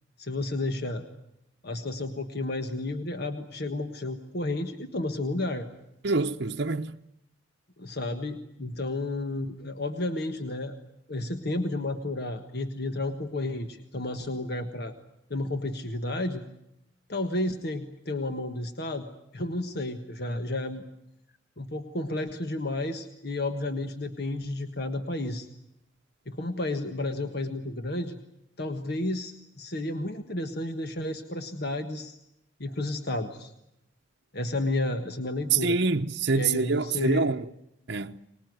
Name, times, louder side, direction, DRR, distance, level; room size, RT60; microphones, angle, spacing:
voice 1, 0.2-1.1 1.6-5.7 7.8-10.8 11.1-14.9 15.3-16.4 17.1-20.8 21.6-25.5 26.3-28.2 28.6-32.2 32.6-33.5 34.3-35.8 36.4-37.3, left 2 dB, 55° left, 1.5 m, -32 dB
voice 2, 6.0-7.0 35.5-37.5 37.9-38.2, right 4 dB, 60° right, 0.9 m, -26 dB
24.5 x 20.5 x 9.5 m
head